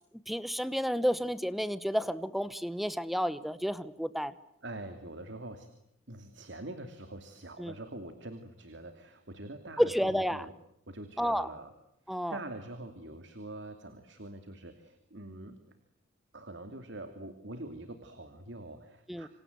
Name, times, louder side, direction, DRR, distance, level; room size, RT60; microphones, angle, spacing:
voice 1, 0.3-4.3 7.6-7.7 9.8-10.4 11.2-11.5 12.1-12.4 19.1-19.3, equal, ahead, 15 dB, 1.1 m, -30 dB
voice 2, 4.6-5.7 6.1-10.5 10.9-11.7 12.1-15.6 16.3-19.3, right 2 dB, 60° right, 8 dB, 2.8 m, -44 dB
27.5 x 27.0 x 8.1 m, 0.77 s
head